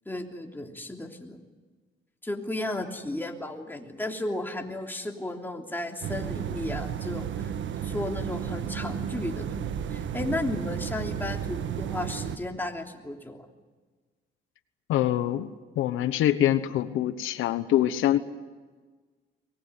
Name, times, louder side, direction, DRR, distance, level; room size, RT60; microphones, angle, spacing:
voice 1, 0.0-1.4 2.2-7.5 7.8-13.5, left 1 dB, 10° left, 2 dB, 3.2 m, -34 dB
sound 1, 6.0-12.4, right 8 dB, 70° right, 1.4 m, -33 dB
voice 2, 14.9-18.2, left 12 dB, 90° left, 12 dB, 1.1 m, -25 dB
24.0 x 19.0 x 9.7 m, 1.4 s
cardioid pair, 90°, 20 cm